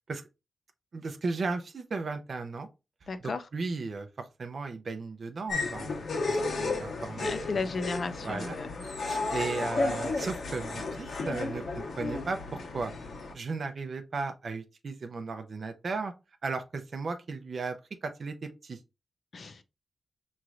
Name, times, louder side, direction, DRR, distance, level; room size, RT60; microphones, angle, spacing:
voice 1, 0.9-2.7 3.0-7.6 8.2-11.6 12.0-12.9 13.3-16.1 16.4-17.8 18.0-18.8, right 4 dB, 50° right, 0.5 m, -36 dB
voice 2, 3.1-3.4 7.1-8.7 19.3-19.6, left 4 dB, 45° left, 0.5 m, -34 dB
sound 1, 5.5-13.3, left 3 dB, 65° left, 1.3 m, -33 dB
5.8 x 3.1 x 2.5 m
wide cardioid pair, 145°, 0 cm